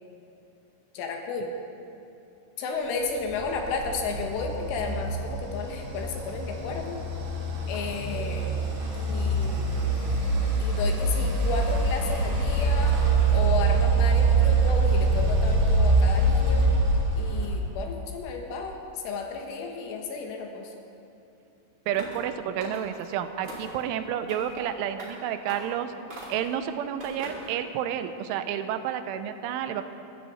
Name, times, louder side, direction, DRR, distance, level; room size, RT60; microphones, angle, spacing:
voice 1, 1.0-1.5 2.6-7.0 7.7-8.6 8.9-9.8 10.6-13.0 13.3-16.7 17.2-20.7, left 4 dB, 80° left, 2 dB, 3.8 m, -33 dB
sound 1, 3.2-17.7, right 3 dB, 50° right, 4.4 m, -24 dB
sound 2, 21.9-22.3 22.6-23.0 23.4-23.8 24.3-24.6 25.0-25.1 25.5-25.7 26.1-26.5 27.0-27.5, right 1 dB, 30° right, 5.2 m, -41 dB
voice 2, 21.9-25.9 26.3-29.9, right 9 dB, 85° right, 9 dB, 3.2 m, -30 dB
23.0 x 13.5 x 4.3 m, 2.8 s
omnidirectional pair, 5.5 m